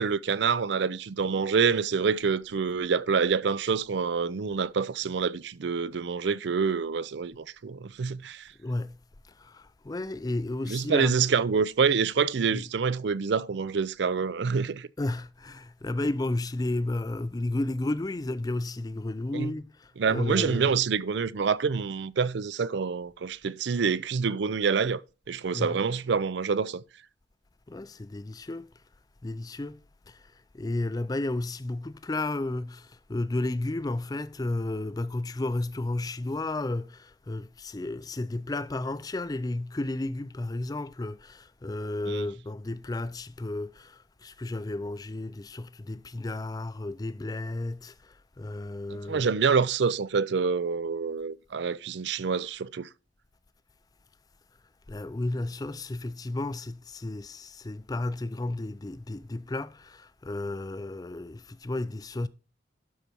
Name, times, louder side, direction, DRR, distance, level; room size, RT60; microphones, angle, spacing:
voice 1, 0.0-8.5 10.7-14.9 19.3-19.5 20.0-25.0 25.3-26.8 42.1-42.3 48.9-52.9, right 5 dB, 60° right, 0.4 m, -27 dB
voice 2, 8.6-9.0 9.2-11.2 12.5-12.7 15.0-20.8 25.5-25.8 27.7-28.7 29.2-49.3 54.9-62.3, left 2 dB, 20° left, 0.4 m, -33 dB
12.0 x 4.7 x 4.4 m
head